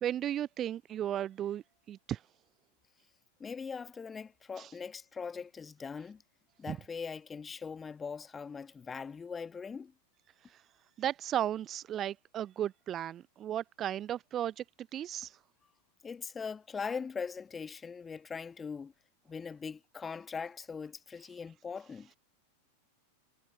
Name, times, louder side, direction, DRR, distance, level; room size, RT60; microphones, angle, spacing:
voice 1, 0.0-2.2 4.6-4.7 6.7-6.8 10.5-10.6 11.0-14.6 14.9-15.4, right 11 dB, 30° right, 0.4 m, -35 dB
voice 2, 3.4-6.2 6.6-9.9 16.0-18.9 19.3-22.1, left 5 dB, 15° left, 1.2 m, -41 dB
figure-of-eight pair, 90°, 0 cm